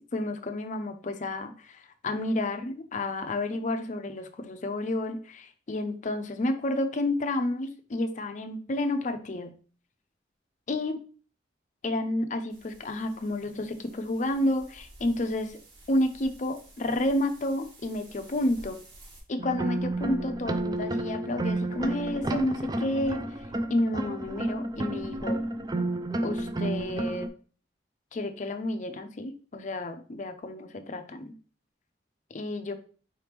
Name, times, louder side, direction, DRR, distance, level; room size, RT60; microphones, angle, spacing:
voice 1, 0.1-9.5 10.7-10.9 11.8-15.6 15.9-18.8 19.3-23.2 23.7-25.4 26.2-27.3 28.1-31.3 32.3-32.7, left 1 dB, 40° left, 8 dB, 0.5 m, -30 dB
sound 1, 12.5-19.2, right 1 dB, 70° right, 1.8 m, -52 dB
sound 2, 19.4-27.3, right 1 dB, 20° right, 0.3 m, -31 dB
4.9 x 3.0 x 3.3 m, 0.40 s
head